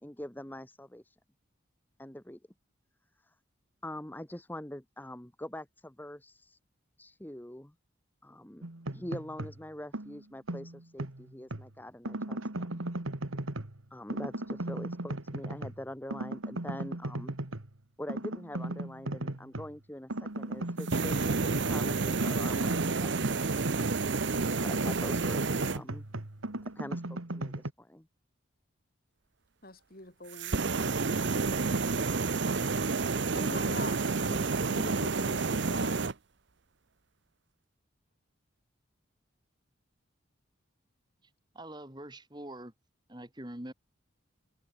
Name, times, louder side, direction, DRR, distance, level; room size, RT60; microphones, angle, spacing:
voice 1, 0.0-1.2 2.0-2.4 3.2-3.3 3.8-6.6 7.0-7.7 8.2-8.6 8.9-12.7 13.9-17.3 18.0-23.3 24.5-26.0 26.7-28.1, left 1 dB, 10° left, 0.9 m, -44 dB
sound 1, 8.6-9.6 9.9-11.7 12.0-13.8 14.1-15.8 16.1-17.7 18.1-19.7 20.1-24.1 24.4-27.7, right 1 dB, 90° right, 2.0 m, -37 dB
sound 2, 20.8-25.8 30.3-36.1, right 4 dB, 60° right, 0.8 m, -30 dB
voice 2, 29.6-31.8 33.3-36.1, left 2 dB, 45° left, 4.6 m, -44 dB
voice 3, 41.5-42.7 43.1-43.7, right 1 dB, 20° right, 2.1 m, -44 dB
head